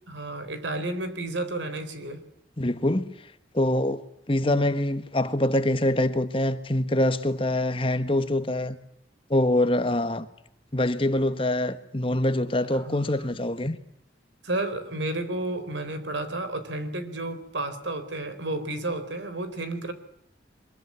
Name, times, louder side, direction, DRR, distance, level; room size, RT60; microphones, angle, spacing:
voice 1, 0.1-2.2 12.7-13.4 14.4-19.9, right 2 dB, 85° right, 3.9 m, -32 dB
voice 2, 2.6-3.1 3.5-4.0 4.3-8.8 9.3-10.3 10.7-13.8, left 1 dB, 30° left, 1.4 m, -24 dB
24.0 x 22.5 x 9.5 m
head